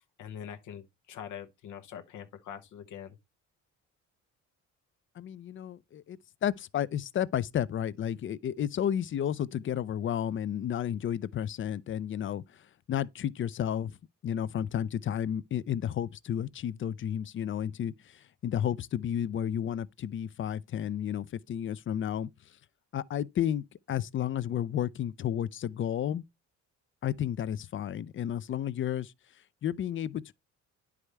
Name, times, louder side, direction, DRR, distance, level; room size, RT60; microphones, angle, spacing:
voice 1, 0.2-3.2, left 9 dB, 80° left, 0.8 m, -43 dB
voice 2, 5.2-14.0 14.2-22.3 22.9-26.2 27.0-29.1 29.6-30.3, left 10 dB, 40° left, 0.4 m, -32 dB
9.7 x 4.8 x 3.2 m
cardioid pair, 90°, 30 cm